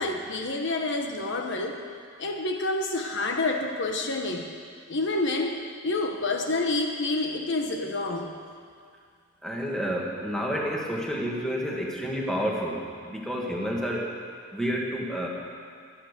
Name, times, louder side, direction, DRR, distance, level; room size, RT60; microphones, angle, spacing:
voice 1, 0.0-1.8 2.2-4.5 4.9-5.6 5.8-8.3, left 2 dB, 55° left, 3 dB, 1.1 m, -28 dB
voice 2, 9.4-14.1 14.5-15.3, equal, 5° left, -2 dB, 2.0 m, -30 dB
22.5 x 8.8 x 6.8 m, 2.2 s
head